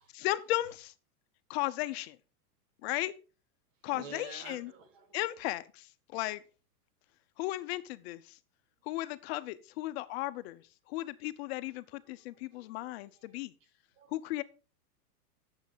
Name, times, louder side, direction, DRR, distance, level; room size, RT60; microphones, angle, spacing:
voice 1, 0.2-0.9 1.5-2.2 2.8-3.1 3.8-4.7 5.1-6.4 7.4-8.4 8.8-13.5 14.1-14.4, left 17 dB, 40° left, 0.7 m, -35 dB
voice 2, 3.8-5.2 12.0-13.4 14.0-14.4, right 6 dB, 55° right, 2.6 m, -52 dB
9.1 x 7.3 x 5.1 m
supercardioid pair, 145°, 46 cm